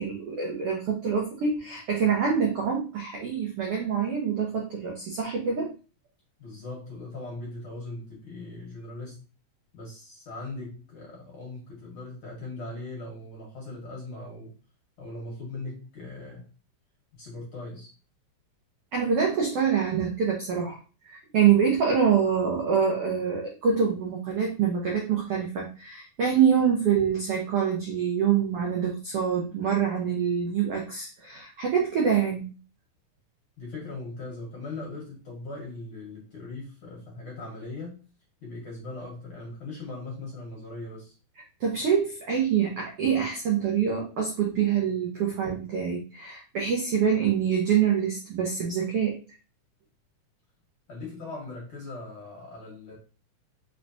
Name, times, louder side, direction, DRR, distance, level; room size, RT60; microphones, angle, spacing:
voice 1, 0.0-5.7 18.9-32.5 41.6-49.2, right 7 dB, 75° right, -1 dB, 1.3 m, -25 dB
voice 2, 6.4-9.2 9.7-14.5 15.0-16.5 17.2-17.9 33.6-38.0 38.4-41.1 50.9-53.0, left 2 dB, 55° left, -3 dB, 1.6 m, -39 dB
4.7 x 3.2 x 2.6 m, 0.34 s
omnidirectional pair, 3.7 m